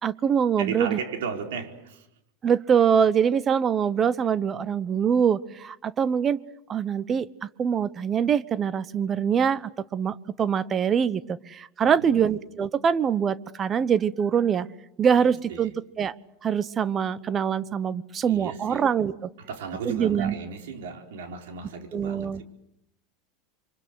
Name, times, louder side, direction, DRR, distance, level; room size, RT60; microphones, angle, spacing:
voice 1, 0.0-1.0 2.4-6.4 6.7-14.7 15.0-15.7 16.0-16.1 16.4-19.3 19.8-20.3 21.9-22.4, right 7 dB, 30° right, 19 dB, 1.0 m, -24 dB
voice 2, 0.6-2.1 11.8-12.3 15.1-15.7 18.2-18.8 19.4-22.4, right 6 dB, 80° right, 4 dB, 4.4 m, -35 dB
27.5 x 24.5 x 7.9 m, 0.81 s
supercardioid pair, 115°, 0 cm